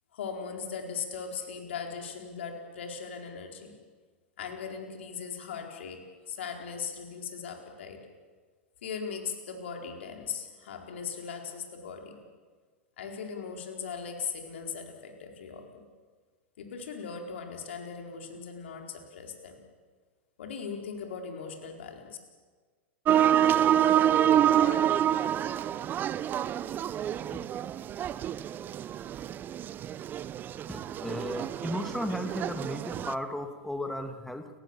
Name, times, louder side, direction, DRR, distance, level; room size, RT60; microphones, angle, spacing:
voice 1, 0.1-3.7 4.4-8.0 8.8-12.1 13.0-15.8 16.6-19.6 20.4-22.2, left 6 dB, 70° left, 2 dB, 4.4 m, -39 dB
sound 1, 23.1-33.1, right 10 dB, 30° right, 0.7 m, -27 dB
voice 2, 30.7-34.5, equal, 5° left, 6 dB, 2.2 m, -35 dB
29.5 x 16.5 x 7.3 m, 1.5 s
hypercardioid pair, 100°, 7 cm